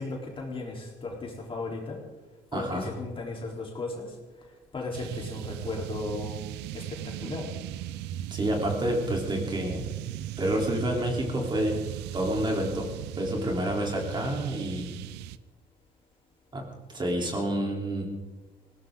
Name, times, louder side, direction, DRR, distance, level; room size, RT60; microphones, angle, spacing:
voice 1, 0.0-2.0 2.5-4.1 4.7-6.4 6.7-7.5, left 2 dB, 30° left, -1 dB, 3.8 m, -36 dB
voice 2, 2.5-2.9 8.3-9.9 10.4-11.9 12.1-12.9 13.2-15.0 16.5-16.7 16.9-18.1, right 1 dB, 25° right, 0 dB, 3.6 m, -28 dB
sound 1, 4.9-15.4, right 12 dB, 85° right, 0.6 m, -37 dB
19.5 x 17.5 x 3.9 m, 1.3 s
cardioid pair, 110°, 17 cm